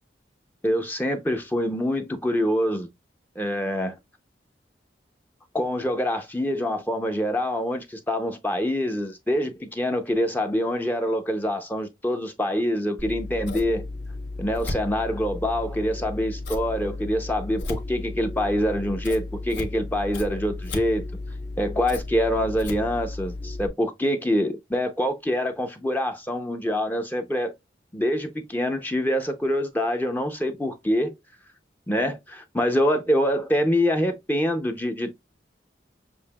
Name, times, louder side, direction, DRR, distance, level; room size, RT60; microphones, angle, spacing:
voice 1, 0.6-2.9 3.4-4.0 5.5-13.9 14.4-21.0 21.6-27.5 27.9-31.1 31.9-35.2, equal, 10° left, 0.5 m, -25 dB
Scissors, 13.0-23.7, left 2 dB, 75° left, 1.3 m, -34 dB
6.9 x 2.8 x 2.2 m
head